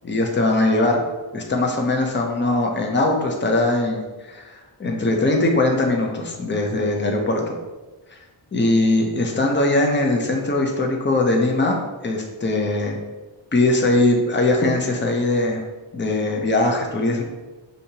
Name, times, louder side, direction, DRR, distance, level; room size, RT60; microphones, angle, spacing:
voice 1, 0.0-1.0 1.3-7.6 8.1-8.2 8.5-13.0 13.5-15.6 15.9-17.2, left 2 dB, 25° left, 1 dB, 0.7 m, -21 dB
5.2 x 2.7 x 2.8 m, 1.2 s
cardioid pair, 60°, 49 cm